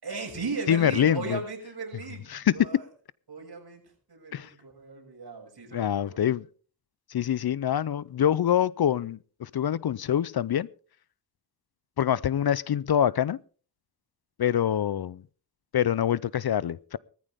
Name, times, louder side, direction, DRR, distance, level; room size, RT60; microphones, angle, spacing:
voice 1, 0.0-2.9 3.3-3.8 4.1-6.4, right 4 dB, 60° right, 6.9 m, -37 dB
voice 2, 0.7-1.4 2.3-2.8 4.3-4.5 5.7-6.5 7.1-10.7 12.0-13.4 14.4-15.2 15.7-17.0, left 10 dB, 60° left, 0.6 m, -25 dB
19.5 x 14.5 x 3.6 m
wide cardioid pair, 85°, 42 cm